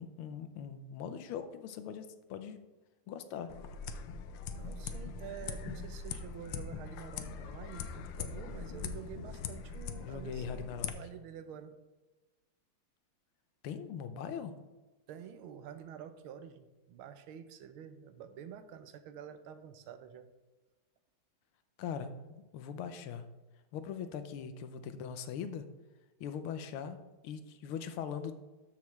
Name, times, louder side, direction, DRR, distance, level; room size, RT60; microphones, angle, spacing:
voice 1, 0.0-2.6 3.1-3.5 10.0-10.9 13.6-14.5 21.8-23.2 23.7-25.6 26.2-28.3, left 7 dB, 90° left, 10 dB, 1.6 m, -41 dB
sound 1, 3.5-10.9, left 6 dB, 75° left, 1.3 m, -41 dB
voice 2, 4.5-11.8 15.1-20.3, right 8 dB, 80° right, 10 dB, 1.5 m, -48 dB
13.0 x 5.9 x 3.2 m, 1.2 s
omnidirectional pair, 2.3 m